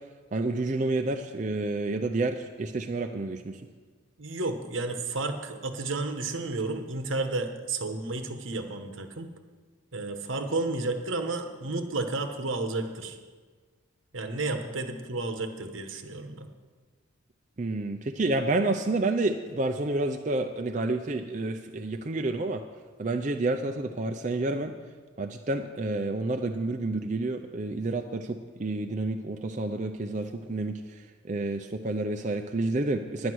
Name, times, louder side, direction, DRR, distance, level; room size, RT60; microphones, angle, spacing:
voice 1, 0.3-3.6 17.6-22.6 23.0-24.7 25.2-30.7 31.3-33.3, right 2 dB, 35° right, 4 dB, 0.5 m, -29 dB
voice 2, 4.2-9.3 9.9-13.2 14.1-16.5, right 3 dB, 80° right, 7 dB, 1.1 m, -32 dB
10.5 x 9.6 x 6.2 m, 1.4 s
head